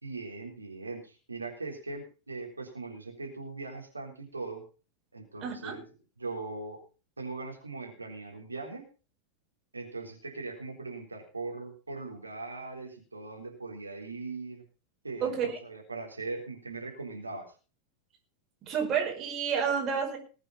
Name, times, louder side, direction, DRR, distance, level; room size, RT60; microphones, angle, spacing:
voice 1, 0.0-4.6 5.1-5.9 6.2-6.8 7.2-8.9 9.7-14.6 15.0-15.3 15.6-17.5, right 3 dB, 80° right, 1 dB, 3.7 m, -40 dB
voice 2, 5.4-5.7 15.2-15.6 18.6-20.2, right 7 dB, 30° right, 2 dB, 5.1 m, -30 dB
20.0 x 8.2 x 5.4 m, 0.35 s
figure-of-eight pair, 90°, 0 cm